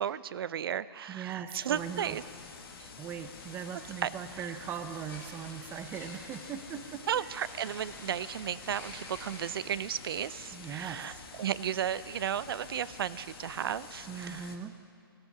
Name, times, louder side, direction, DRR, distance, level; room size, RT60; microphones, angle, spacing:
voice 1, 0.0-2.2 2.8-2.9 4.0-4.6 7.1-14.5, right 9 dB, 70° right, 17 dB, 0.5 m, -34 dB
voice 2, 1.1-2.2 3.0-7.3 10.5-11.2 14.1-14.8, right 8 dB, 15° right, 9 dB, 0.6 m, -40 dB
sound 1, 1.7-14.6, left 5 dB, 70° left, 1.7 m, -49 dB
sound 2, 3.2-11.1, left 2 dB, 15° left, 2.7 m, -51 dB
17.0 x 14.5 x 4.9 m, 2.3 s
hypercardioid pair, 155°, 13 cm